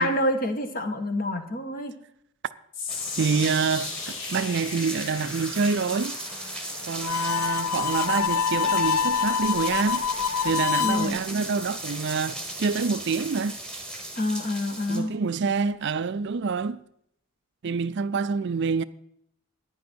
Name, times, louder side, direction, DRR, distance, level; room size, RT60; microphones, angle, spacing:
voice 1, 0.0-2.0 10.8-11.2 14.2-15.1, left 1 dB, 40° left, 1.4 m, -27 dB
sound 1, 2.7-15.1 15.4-15.7 16.4-16.5, left 6 dB, 55° left, 1.3 m, -41 dB
sound 2, 2.9-15.0, right 1 dB, 5° left, 1.7 m, -37 dB
voice 2, 3.2-6.2 6.9-10.1 10.4-13.6 14.9-16.8 17.6-18.8, right 5 dB, 50° right, 0.4 m, -27 dB
Harmonica, 7.0-11.1, left 7 dB, 80° left, 0.6 m, -25 dB
14.5 x 10.5 x 4.5 m
head